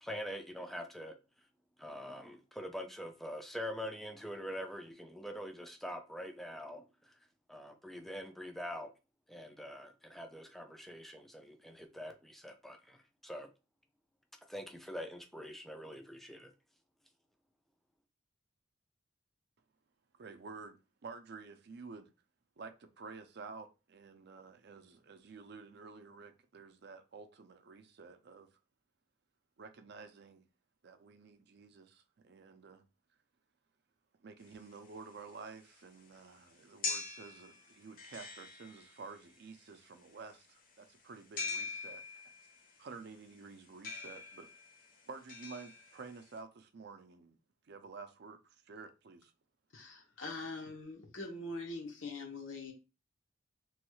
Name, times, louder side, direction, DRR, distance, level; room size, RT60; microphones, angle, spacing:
voice 1, 0.0-1.1 1.8-6.8 7.5-8.9 9.3-13.5 14.5-16.5, equal, ahead, 0.3 m, -44 dB
voice 2, 20.2-22.1 22.6-28.5 29.6-30.5 30.8-32.8 34.2-42.0 42.8-44.5 45.1-47.4 47.6-49.3, right 4 dB, 60° right, 0.5 m, -51 dB
sound 1, 34.4-46.4, left 4 dB, 45° left, 0.7 m, -44 dB
voice 3, 49.7-52.7, left 2 dB, 85° left, 0.9 m, -43 dB
3.1 x 2.3 x 3.0 m
head